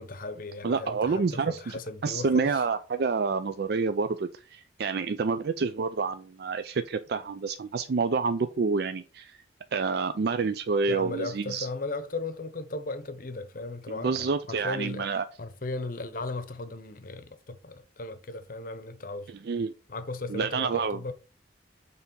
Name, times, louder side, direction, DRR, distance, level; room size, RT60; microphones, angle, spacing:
voice 1, 0.0-2.6 10.9-19.3 19.9-21.1, left 2 dB, 45° left, 0.8 m, -36 dB
voice 2, 0.6-9.4 9.7-11.7 14.0-15.3 19.3-19.7 20.3-21.0, right 4 dB, 55° right, 0.4 m, -28 dB
6.8 x 3.4 x 5.3 m
head